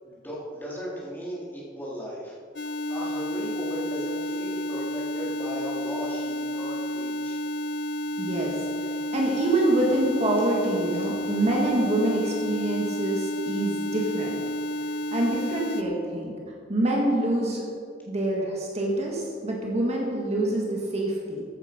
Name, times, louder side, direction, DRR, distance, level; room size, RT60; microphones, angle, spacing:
voice 1, 0.0-2.3 2.9-7.4, equal, 10° left, -6 dB, 3.5 m, -36 dB
sound 1, 2.6-15.8, equal, 75° left, 0.9 m, -31 dB
voice 2, 8.2-8.5 9.1-14.4 15.1-16.3 16.7-17.6 18.1-21.4, right 1 dB, 40° right, -2 dB, 2.0 m, -26 dB
14.5 x 9.4 x 5.3 m, 2.2 s
head